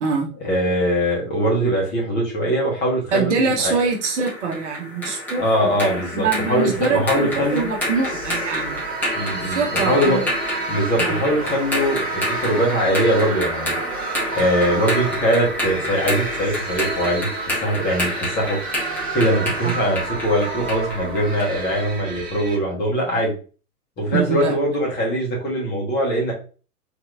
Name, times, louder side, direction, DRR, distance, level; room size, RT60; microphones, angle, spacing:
voice 1, 0.4-3.4 3.6-3.7 5.4-7.7 9.2-10.2 10.7-13.8 14.3-17.3 17.6-18.6 19.1-23.3 24.0-26.3, equal, 20° left, -3 dB, 1.3 m, -21 dB
voice 2, 3.1-5.7 6.1-8.8 9.4-10.2 11.0-11.2 19.6-19.8 24.1-24.5, right 4 dB, 50° right, 1 dB, 0.9 m, -24 dB
sound 1, 3.8-21.6, left 1 dB, 5° left, 0.7 m, -29 dB
sound 2, 7.0-22.6, right 4 dB, 20° right, 1.1 m, -31 dB
3.3 x 2.9 x 2.5 m, 0.36 s
figure-of-eight pair, 110°, 46 cm